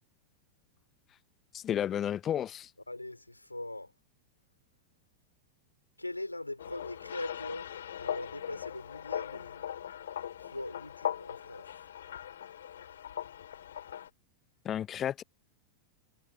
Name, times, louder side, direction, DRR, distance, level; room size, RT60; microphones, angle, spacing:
voice 1, 1.5-2.7 14.6-15.2, left 10 dB, 25° left, 1.0 m, -32 dB
voice 2, 2.9-3.9 6.0-9.7 10.4-11.7, left 2 dB, 85° left, 5.4 m, -41 dB
sound 1, 6.6-14.1, left 10 dB, 65° left, 3.1 m, -40 dB
figure-of-eight pair, 90°, 0 cm